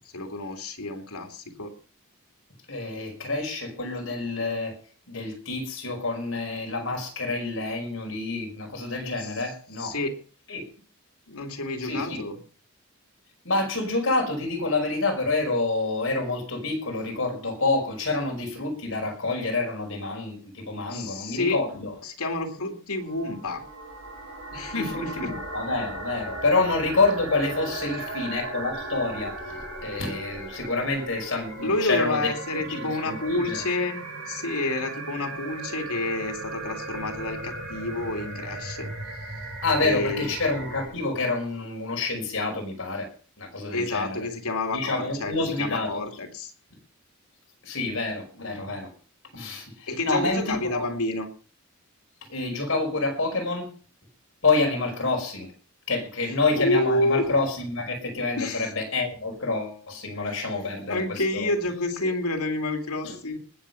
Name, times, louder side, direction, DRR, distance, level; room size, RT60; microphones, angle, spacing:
voice 1, 0.1-1.7 9.2-9.4 9.8-10.2 11.3-12.4 20.9-23.6 24.5-25.3 27.9-28.2 31.6-34.0 34.3-39.5 39.8-40.3 43.7-46.5 49.9-51.3 56.3-57.3 58.4-58.7 60.1-60.4 60.9-63.4, left 2 dB, 85° left, 4 dB, 2.7 m, -29 dB
voice 2, 2.7-4.7 5.1-10.0 10.5-10.6 11.8-12.2 13.5-21.9 24.7-33.6 39.6-43.1 43.4-44.2 44.7-46.0 47.6-48.9 49.3-50.8 52.3-53.7 54.4-55.5 55.9-61.5 62.0-62.1 63.0-63.2, left 3 dB, 60° left, 2 dB, 5.4 m, -28 dB
sound 1, 23.0-40.9, right 2 dB, 65° right, 7.0 m, -37 dB
19.5 x 7.7 x 5.7 m, 0.41 s
head